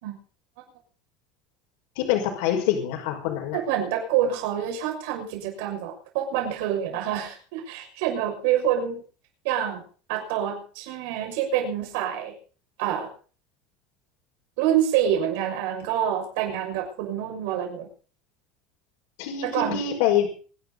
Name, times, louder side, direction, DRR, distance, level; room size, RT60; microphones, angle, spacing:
voice 1, 2.0-3.6 19.2-20.3, left 10 dB, 65° left, 3 dB, 5.4 m, -25 dB
voice 2, 3.5-9.0 9.4-9.8 10.1-12.3 12.8-13.1 14.6-17.9 19.4-19.8, right 10 dB, 70° right, 3 dB, 6.3 m, -27 dB
25.0 x 11.0 x 4.1 m, 0.40 s
cardioid pair, 175°, 0 cm